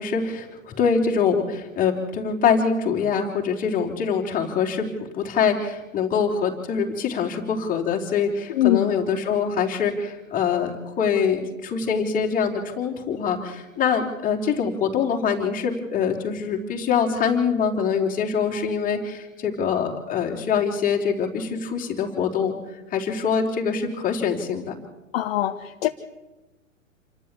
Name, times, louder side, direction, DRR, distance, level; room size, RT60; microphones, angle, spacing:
voice 1, 0.0-4.9 5.1-22.5 22.9-24.8, left 6 dB, 20° left, 0 dB, 3.8 m, -24 dB
voice 2, 8.5-8.9 25.1-25.9, left 13 dB, 45° left, 6 dB, 1.2 m, -22 dB
28.0 x 13.0 x 8.5 m, 1.1 s
figure-of-eight pair, 110°, 40 cm